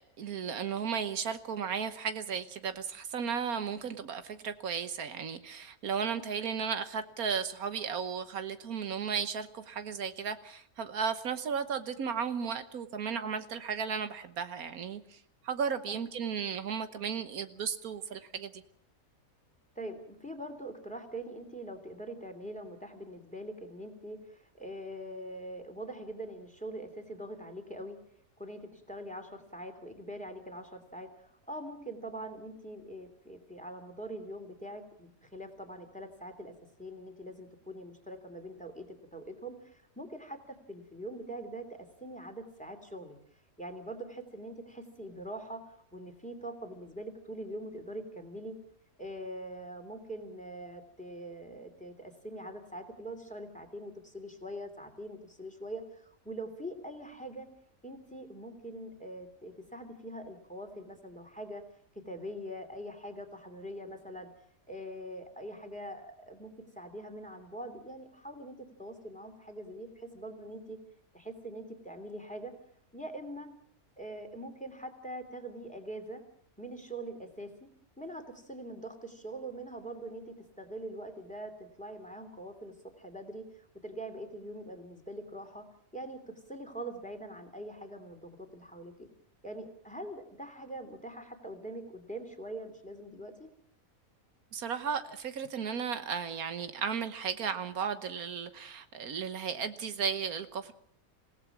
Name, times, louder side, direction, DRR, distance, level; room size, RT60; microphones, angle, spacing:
voice 1, 0.2-18.6 94.5-100.7, right 6 dB, 80° right, 10 dB, 1.5 m, -35 dB
voice 2, 19.7-28.0 28.4-43.2 43.6-48.6 49.0-57.5 57.8-61.6 61.9-64.3 64.7-70.8 71.1-72.5 72.9-73.5 74.0-76.2 76.6-77.7 78.0-85.7 85.9-89.1 89.4-93.5, right 1 dB, 5° left, 6 dB, 2.9 m, -43 dB
27.5 x 17.5 x 6.0 m, 0.65 s
omnidirectional pair, 1.5 m